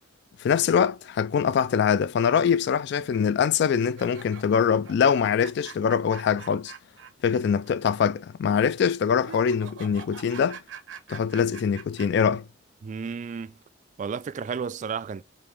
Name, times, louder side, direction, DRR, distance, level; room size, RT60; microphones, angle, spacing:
voice 1, 0.4-6.7 7.2-10.6 11.1-12.5, left 7 dB, 60° left, 0.3 m, -23 dB
sound 1, 3.7-7.4 7.7-7.8 9.2-12.3, right 6 dB, 80° right, 1.0 m, -44 dB
voice 2, 12.8-13.6 14.0-15.2, right 6 dB, 40° right, 0.3 m, -32 dB
4.9 x 2.6 x 3.5 m
head